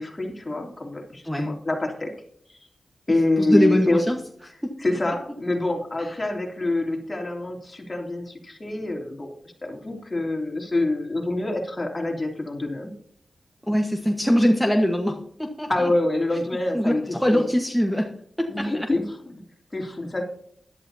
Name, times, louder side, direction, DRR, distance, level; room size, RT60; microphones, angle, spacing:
voice 1, 0.0-2.1 2.5-2.6 3.1-4.0 4.8-9.3 9.6-12.9 15.7-17.5 18.5-19.4 19.7-20.2, left 2 dB, 30° left, 1 dB, 3.1 m, -26 dB
voice 2, 3.4-4.2 4.6-4.7 6.0-6.1 13.7-15.9 16.7-18.1 18.4-18.9, equal, ahead, 3 dB, 1.3 m, -22 dB
16.5 x 11.5 x 2.8 m, 0.64 s
cardioid pair, 75°, 0 cm